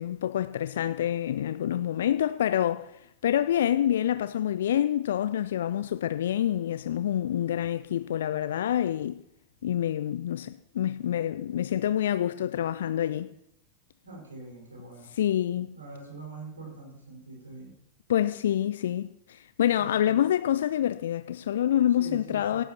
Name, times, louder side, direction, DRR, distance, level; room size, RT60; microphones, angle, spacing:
voice 1, 0.0-2.9 3.2-9.2 9.6-13.3 15.2-15.7 18.1-22.6, left 11 dB, 60° left, 0.4 m, -27 dB
voice 2, 14.0-15.1 15.7-17.7 19.8-20.3 21.9-22.7, right 3 dB, 75° right, 5.0 m, -44 dB
17.5 x 10.0 x 3.0 m
figure-of-eight pair, 90°, 0 cm